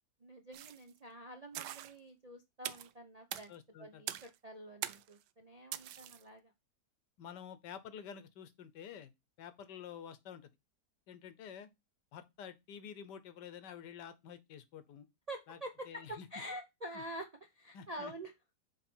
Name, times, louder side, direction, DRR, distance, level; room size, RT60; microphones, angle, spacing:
voice 1, 0.2-3.5 3.8-6.5 15.3-15.7 16.1-17.3 17.5-18.3, right 1 dB, 45° right, 0.4 m, -47 dB
sound 1, 0.5-0.9 1.5-1.9 2.6-2.9 3.3-3.5 4.1-4.4 4.8-5.1 5.7-6.2, right 13 dB, 80° right, 1.2 m, -42 dB
voice 2, 3.5-4.0 7.2-9.1 9.4-10.5 11.1-11.7 12.1-15.1 15.5-15.6 15.9-16.3 17.7-18.1, left 8 dB, 85° left, 1.5 m, -49 dB
8.0 x 3.4 x 4.4 m
omnidirectional pair, 1.8 m